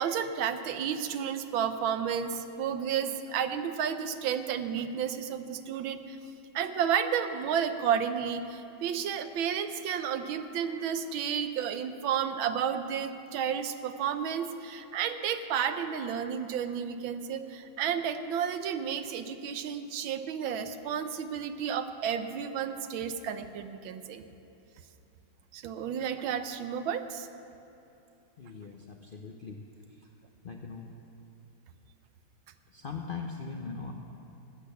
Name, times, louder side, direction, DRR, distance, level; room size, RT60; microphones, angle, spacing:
voice 1, 0.0-6.2 6.5-24.2 25.5-27.3, right 8 dB, 90° right, 9 dB, 1.6 m, -32 dB
voice 2, 28.4-29.6 30.0-30.1 30.4-31.0 32.7-33.9, left 5 dB, 70° left, 2 dB, 0.5 m, -40 dB
19.0 x 8.4 x 6.9 m, 2.9 s
omnidirectional pair, 2.1 m